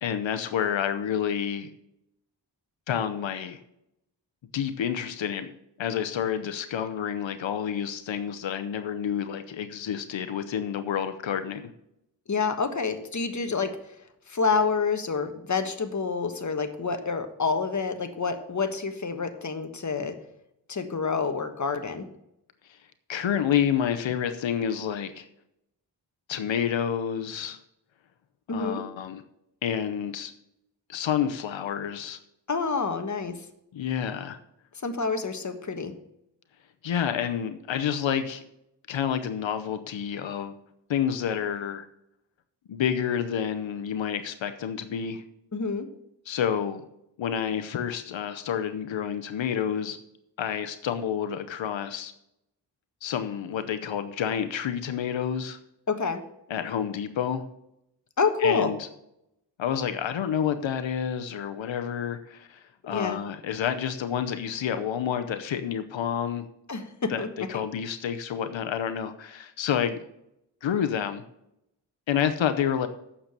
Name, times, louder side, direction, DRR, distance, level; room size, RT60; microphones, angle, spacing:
voice 1, 0.0-1.7 2.9-3.6 4.5-5.5 5.8-11.7 22.6-22.8 23.1-25.3 26.3-27.6 28.5-29.2 29.6-30.3 30.9-32.2 33.7-34.4 36.8-38.4 38.9-40.5 40.9-41.9 42.7-45.2 46.3-46.9 47.2-50.0 50.4-52.1 53.0-55.6 56.5-57.5 58.4-58.9 59.6-66.5 67.1-70.0 70.6-71.2 72.1-72.9, left 8 dB, 85° left, 9 dB, 0.8 m, -29 dB
voice 2, 12.3-13.7 14.3-20.1 20.7-22.0 28.5-28.8 32.5-33.3 34.8-35.9 45.5-45.9 55.9-56.2 58.2-58.7 62.9-63.2 66.7-67.3, left 4 dB, 40° left, 7 dB, 1.4 m, -28 dB
8.8 x 6.9 x 6.7 m, 0.81 s
cardioid pair, 70°, 44 cm